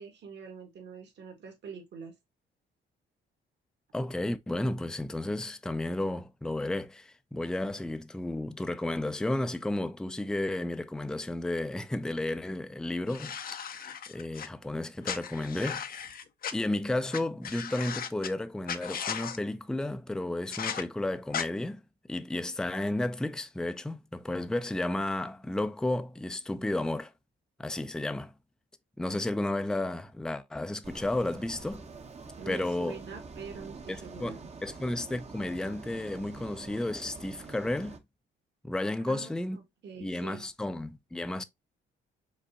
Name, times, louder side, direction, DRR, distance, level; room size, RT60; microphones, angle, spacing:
voice 1, 0.0-2.1 32.4-34.4 39.0-40.5, right 5 dB, 60° right, 1.7 m, -44 dB
voice 2, 3.9-13.4 13.7-16.0 16.5-21.8 22.1-27.1 27.6-28.3 29.0-31.8 32.5-33.0 33.9-38.0 38.6-39.6 40.0-41.4, left 1 dB, 5° left, 0.4 m, -32 dB
sound 1, 13.1-14.5 15.0-16.5 17.1-17.2 17.4-18.3 18.7-19.4 20.5-20.8 21.3-21.4, left 8 dB, 50° left, 0.6 m, -36 dB
sound 2, 30.8-38.0, right 4 dB, 35° right, 0.8 m, -46 dB
5.2 x 3.3 x 2.7 m
cardioid pair, 90°, 20 cm